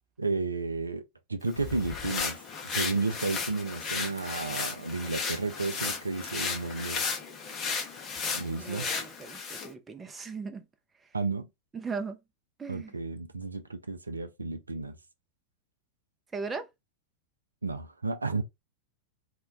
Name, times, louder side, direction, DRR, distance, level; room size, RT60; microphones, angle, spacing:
voice 1, 0.2-1.0 1.3-2.4 2.6-7.0 8.3-8.9 11.1-11.5 12.7-15.0 17.6-18.4, right 3 dB, 80° right, 0.3 m, -32 dB
sound 1, 1.5-9.7, left 5 dB, 30° left, 0.7 m, -34 dB
voice 2, 8.6-10.7 11.7-12.2 12.6-12.9 16.3-16.7, right 4 dB, 15° right, 0.5 m, -38 dB
2.2 x 2.1 x 3.7 m
figure-of-eight pair, 90°, 0 cm